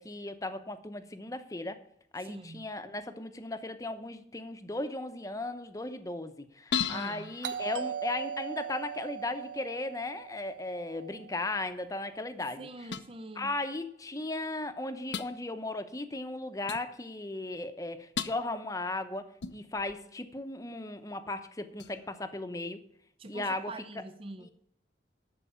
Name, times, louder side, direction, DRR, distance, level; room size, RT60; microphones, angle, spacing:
voice 1, 0.0-1.8 2.1-12.7 13.4-22.8 23.3-23.7 24.4-24.5, left 2 dB, 20° left, 0.8 m, -36 dB
voice 2, 2.2-2.7 6.9-7.4 12.4-13.5 23.2-24.5, right 2 dB, 30° right, 0.5 m, -44 dB
sound 1, 6.7-8.5 12.9-13.1 14.2-14.3 15.1-15.3 16.7-16.9 18.2-18.4 19.4-20.0 21.8-22.1, left 7 dB, 75° left, 0.6 m, -36 dB
Doorbell, 7.4-12.0, right 8 dB, 70° right, 0.6 m, -40 dB
12.5 x 4.7 x 8.6 m
head